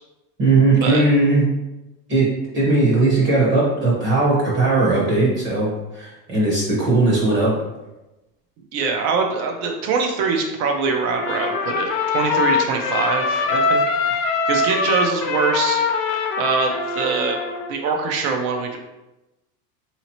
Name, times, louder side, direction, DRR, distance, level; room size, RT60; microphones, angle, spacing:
voice 1, 0.4-1.5 2.1-2.3 2.5-7.5, right 2 dB, 25° right, -5 dB, 0.8 m, -18 dB
voice 2, 8.7-15.8 16.4-18.8, right 4 dB, 50° right, 2 dB, 0.5 m, -23 dB
Trumpet, 11.1-17.7, left 4 dB, 55° left, 0.7 m, -23 dB
3.8 x 2.8 x 2.9 m, 1.0 s
supercardioid pair, 155°, 48 cm